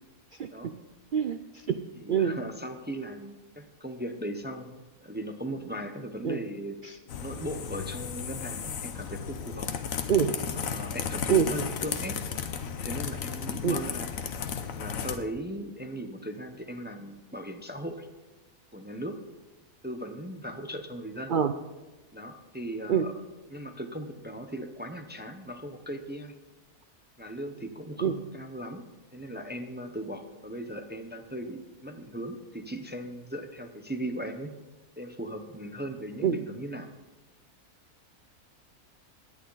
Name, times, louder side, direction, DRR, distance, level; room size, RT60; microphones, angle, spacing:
voice 1, 1.1-1.8 2.1-2.4 6.2-6.4 6.8-7.0 10.1-10.3 11.3-11.5 13.6-13.8 21.3-21.5 22.9-23.0 28.0-28.1 36.2-36.4, right 8 dB, 75° right, 9 dB, 0.4 m, -25 dB
voice 2, 1.9-6.8 7.2-9.7 10.5-12.2 12.6-14.1 14.7-18.1 18.7-19.2 19.8-21.3 22.1-23.1 23.5-26.3 27.2-28.9 29.1-34.6 35.0-36.9, right 1 dB, 10° right, 6 dB, 0.5 m, -38 dB
sound 1, 7.1-15.2, left 7 dB, 70° left, 1.3 m, -34 dB
18.0 x 10.5 x 4.0 m, 1.2 s
omnidirectional pair, 1.5 m